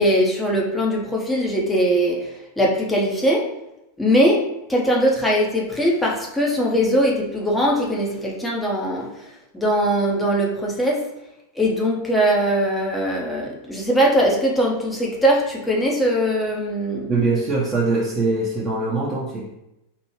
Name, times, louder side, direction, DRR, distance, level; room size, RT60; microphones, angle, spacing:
voice 1, 0.0-3.5 4.0-9.1 9.5-11.0 11.6-17.1, equal, 5° left, -2 dB, 0.9 m, -21 dB
voice 2, 17.1-19.6, right 3 dB, 25° right, -6 dB, 0.8 m, -22 dB
4.5 x 2.6 x 3.0 m, 0.89 s
figure-of-eight pair, 90°, 0 cm